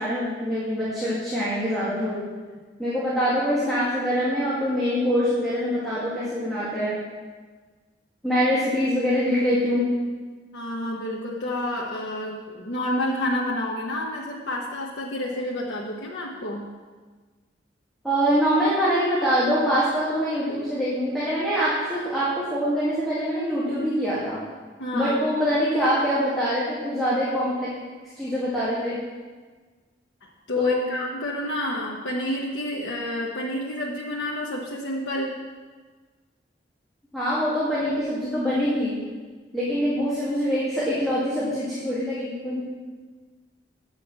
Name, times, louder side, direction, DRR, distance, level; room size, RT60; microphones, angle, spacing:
voice 1, 0.0-2.2 2.8-7.0 8.2-9.9 18.0-24.4 24.9-27.7 28.2-29.0 30.6-30.9 37.1-38.9 39.5-42.6, equal, ahead, -10 dB, 1.9 m, -24 dB
voice 2, 10.5-16.6 24.8-25.2 30.5-35.3, left 1 dB, 85° left, -3 dB, 1.0 m, -29 dB
8.3 x 5.7 x 7.3 m, 1.4 s
head